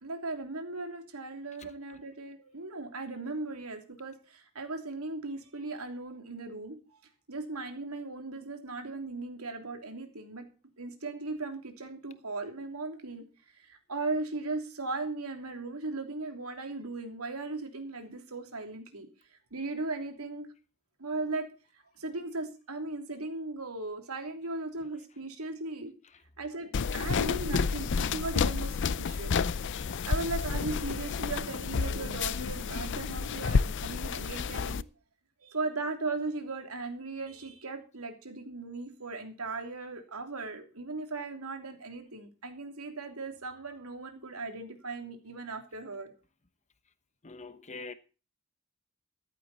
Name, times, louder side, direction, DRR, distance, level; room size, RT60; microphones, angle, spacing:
voice 1, 0.0-6.8 7.3-10.4 10.8-13.2 13.6-20.5 21.0-21.5 22.0-25.9 26.4-29.4 29.9-34.8 35.4-46.1, right 3 dB, 85° right, 3.1 m, -37 dB
voice 2, 1.6-2.0 47.2-47.9, left 3 dB, 35° left, 1.1 m, -45 dB
sound 1, 26.7-34.8, left 5 dB, 55° left, 0.5 m, -30 dB
14.0 x 12.0 x 4.2 m
head